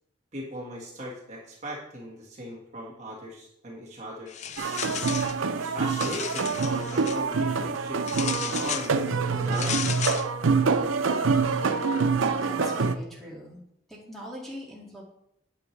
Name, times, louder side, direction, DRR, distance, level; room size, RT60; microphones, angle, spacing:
voice 1, 0.3-4.3 5.6-10.0, equal, 35° right, -3 dB, 1.5 m, -38 dB
sound 1, 4.3-5.4 5.8-7.2 8.1-8.9 9.5-10.3, left 9 dB, 35° left, 0.4 m, -34 dB
sound 2, 4.6-12.9, right 4 dB, 90° right, 0.6 m, -26 dB
voice 2, 12.3-13.6 13.9-15.0, equal, ahead, -5 dB, 2.1 m, -41 dB
8.9 x 8.0 x 3.2 m, 0.78 s
head